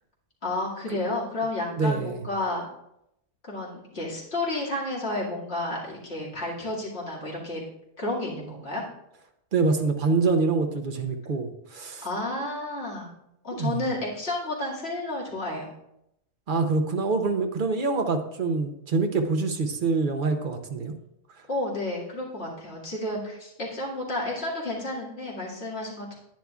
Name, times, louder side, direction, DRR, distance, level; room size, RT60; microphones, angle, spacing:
voice 1, 0.4-2.6 3.4-7.6 8.0-8.8 12.0-13.1 13.4-15.7 21.5-26.2, left 2 dB, 50° left, -5 dB, 2.4 m, -31 dB
voice 2, 1.7-2.2 9.5-12.1 13.5-13.9 16.5-20.9, right 4 dB, 45° right, 6 dB, 0.9 m, -25 dB
10.5 x 9.7 x 2.4 m, 0.82 s
omnidirectional pair, 1.4 m